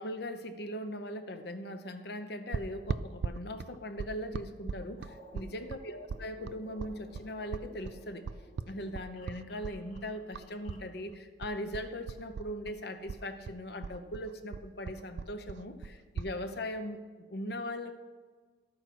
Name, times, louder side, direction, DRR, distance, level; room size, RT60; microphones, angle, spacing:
voice 1, 0.0-8.3 8.7-17.0 17.3-18.0, equal, 60° left, 8 dB, 0.9 m, -40 dB
sound 1, 2.5-10.8 11.1-12.8 13.1-16.3, right 5 dB, 65° right, 0.3 m, -39 dB
sound 2, 5.0-10.9, equal, 45° left, 2.5 m, -56 dB
12.0 x 8.8 x 6.1 m, 1.4 s
head